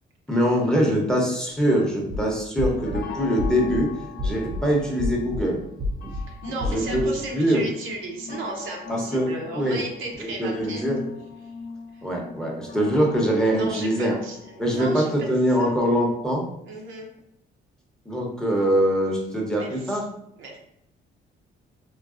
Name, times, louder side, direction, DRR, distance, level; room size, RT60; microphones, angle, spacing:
voice 1, 0.3-3.9 4.2-5.6 6.6-7.1 7.3-7.6 8.9-9.8 10.2-11.0 12.0-14.2 14.6-16.4 18.1-20.0, equal, 5° left, -2 dB, 0.8 m, -23 dB
sound 1, 2.0-2.2 2.6-3.0 3.4-3.8 4.2-4.6 5.0-5.4 5.8-6.2 6.6-7.0, left 2 dB, 25° right, 0.4 m, -29 dB
sound 2, 2.1-16.3, left 5 dB, 45° left, 0.6 m, -41 dB
voice 2, 6.1-10.8 13.5-15.1 15.6-15.8 16.6-17.1 19.5-20.0 20.4-20.6, right 2 dB, 75° right, 0 dB, 0.7 m, -35 dB
3.8 x 2.0 x 2.4 m, 0.75 s
cardioid pair, 90°, 20 cm